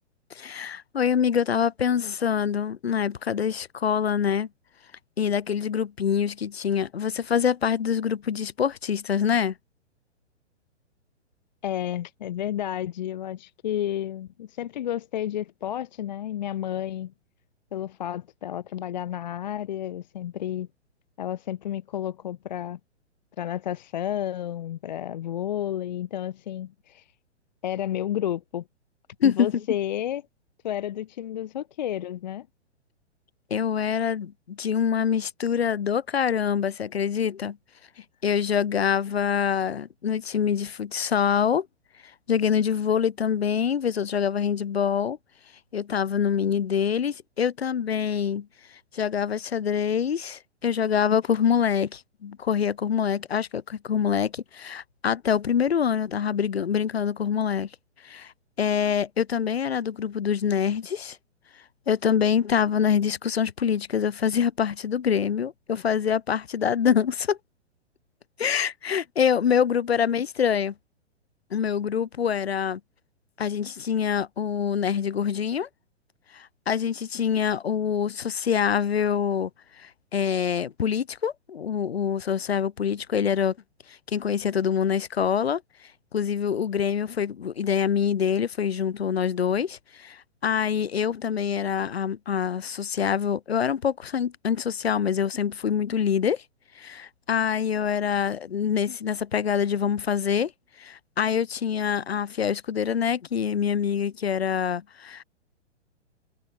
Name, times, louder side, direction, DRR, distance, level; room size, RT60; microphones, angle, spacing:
voice 1, 0.4-4.5 5.2-9.5 29.2-29.5 33.5-37.6 38.2-41.7 42.3-45.2 45.7-48.5 48.9-57.7 58.0-58.3 58.6-61.2 61.9-67.4 68.4-70.7 71.5-72.8 73.4-75.7 76.3-79.5 79.8-83.5 84.1-85.6 86.1-96.4 96.8-100.5 100.8-105.2, left 7 dB, 60° left, 1.7 m, -25 dB
voice 2, 11.6-17.1 17.7-20.7 21.2-22.8 23.4-27.1 27.6-28.7 29.2-30.3 30.6-32.5, left 11 dB, 40° left, 0.6 m, -31 dB
figure-of-eight pair, 120°, 35 cm